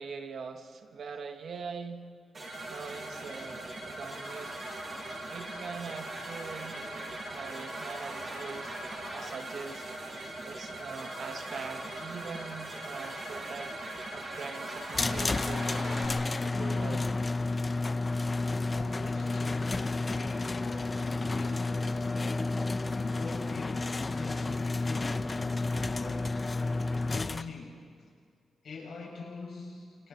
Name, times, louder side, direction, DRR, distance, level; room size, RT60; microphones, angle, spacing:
voice 1, 0.0-2.0 2.7-4.5 5.3-8.7 9.1-10.0 10.5-13.7 14.1-15.9 16.3-17.1, right 5 dB, 55° right, 6 dB, 1.8 m, -42 dB
sound 1, 2.3-16.1, right 1 dB, 35° right, 7.9 m, -40 dB
sound 2, 14.9-27.4, left 3 dB, 20° left, 0.7 m, -31 dB
voice 2, 18.7-22.1 22.9-25.5 25.9-26.3 26.9-27.8 28.6-30.1, left 4 dB, 65° left, -2 dB, 7.7 m, -44 dB
30.0 x 29.0 x 4.6 m, 2.2 s
wide cardioid pair, 180°, 0 cm